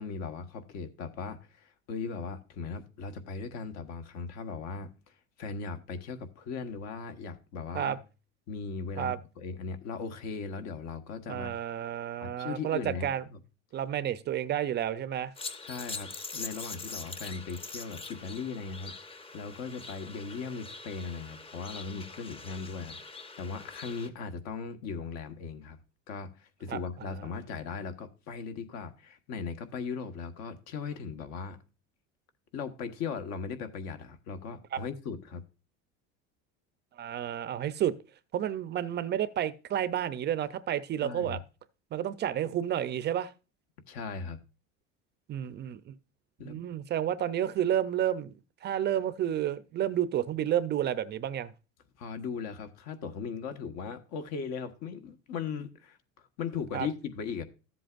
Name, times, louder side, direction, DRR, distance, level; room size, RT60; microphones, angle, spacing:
voice 1, 0.0-4.9 5.4-8.0 8.5-11.5 12.2-13.4 15.6-25.8 26.1-31.6 32.5-35.4 41.0-41.4 43.9-44.4 46.4-46.6 52.0-56.0 56.4-57.4, left 5 dB, 55° left, 1.4 m, -38 dB
voice 2, 11.3-13.2 13.7-15.3 26.7-27.2 34.7-34.8 37.0-37.9 38.3-41.4 41.9-43.3 45.3-45.9 46.4-48.3 48.6-51.5 56.7-56.9, right 10 dB, 35° right, 0.5 m, -31 dB
sound 1, 15.4-24.1, left 3 dB, 20° left, 0.9 m, -43 dB
13.5 x 7.7 x 2.5 m
cardioid pair, 135°, 31 cm